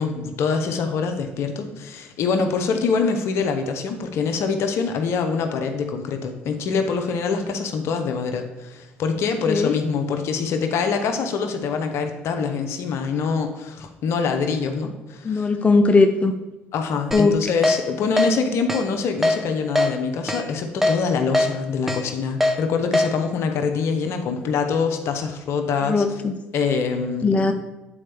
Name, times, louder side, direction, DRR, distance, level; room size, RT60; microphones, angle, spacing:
voice 1, 0.0-15.5 16.7-26.0 26.5-27.5, left 5 dB, 65° left, 6 dB, 0.8 m, -24 dB
voice 2, 15.2-16.4 17.1-17.4 25.8-26.3 27.2-27.5, left 3 dB, 25° left, 6 dB, 0.6 m, -18 dB
Keyboard (musical), 17.1-17.2 17.6-17.8 18.2-18.3 18.7-18.8 19.2-19.4 19.8-19.9 20.3-20.4 20.8-21.0 21.3-21.5 21.9-22.0 22.4-22.5 22.9-23.1, left 1 dB, 5° right, 1.0 m, -20 dB
8.6 x 4.3 x 3.4 m, 1.0 s
hypercardioid pair, 65°, 5 cm